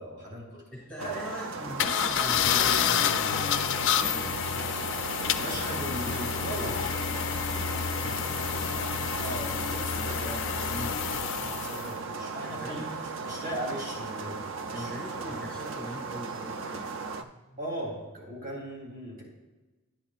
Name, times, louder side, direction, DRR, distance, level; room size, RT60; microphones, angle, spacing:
voice 1, 0.0-0.6 1.0-1.1 5.4-6.9 9.3-9.4 9.9-10.3 11.6-12.9 13.2-14.9 15.3-15.4 17.6-19.2, equal, 40° right, -4 dB, 3.0 m, -38 dB
voice 2, 0.7-3.5 3.8-4.4 9.1-9.6 10.1-11.2 12.4-12.9 14.7-16.9 17.2-17.5, equal, 5° left, -4 dB, 1.4 m, -41 dB
sound 1, 1.0-17.2, right 4 dB, 55° right, 0.4 m, -37 dB
sound 2, 1.8-11.9, left 8 dB, 55° left, 0.3 m, -29 dB
sound 3, 3.8-9.5, right 2 dB, 70° right, 1.0 m, -47 dB
10.5 x 8.8 x 2.4 m, 1.1 s
head